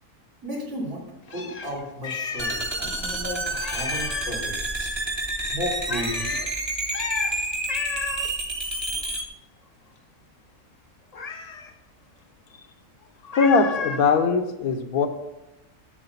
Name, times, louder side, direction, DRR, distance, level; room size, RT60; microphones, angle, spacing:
voice 1, 0.4-1.0 1.3-4.9 5.5-6.4, equal, 60° right, -2 dB, 3.2 m, -33 dB
Meow, 1.3-2.8 3.1-3.2 3.5-4.4 5.9-6.5 6.9-7.3 7.7-8.3 11.1-11.7 13.3-14.0, left 5 dB, 55° left, 0.4 m, -32 dB
sound 1, 2.4-9.2, right 2 dB, 20° right, 0.8 m, -29 dB
voice 2, 13.2-15.1, left 4 dB, 75° left, 6 dB, 1.3 m, -21 dB
8.0 x 7.4 x 5.6 m, 0.99 s
omnidirectional pair, 1.6 m